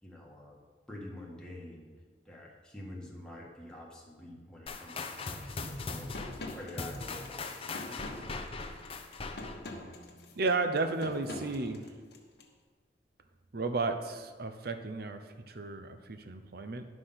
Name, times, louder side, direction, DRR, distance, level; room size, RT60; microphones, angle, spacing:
voice 1, 0.0-0.6 0.9-1.9 2.2-8.5, left 1 dB, 5° left, -3 dB, 1.6 m, -47 dB
sound 1, 4.7-9.7, left 3 dB, 30° left, 0.7 m, -40 dB
sound 2, 6.1-12.5, left 2 dB, 65° left, 1.3 m, -45 dB
voice 2, 10.4-11.9 13.5-16.9, right 3 dB, 60° right, 8 dB, 0.8 m, -33 dB
12.0 x 4.9 x 5.7 m, 1.5 s
head